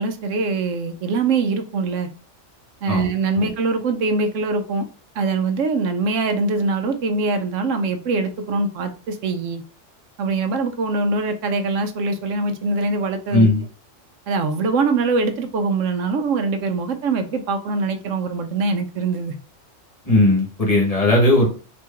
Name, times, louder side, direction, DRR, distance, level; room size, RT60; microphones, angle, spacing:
voice 1, 0.0-2.1 2.8-4.8 5.2-9.6 10.2-13.5 14.3-19.4, right 3 dB, 75° right, 8 dB, 1.0 m, -23 dB
voice 2, 13.3-13.6 20.0-21.5, left 1 dB, 30° left, -3 dB, 1.5 m, -16 dB
4.5 x 2.9 x 3.4 m, 0.36 s
omnidirectional pair, 1.3 m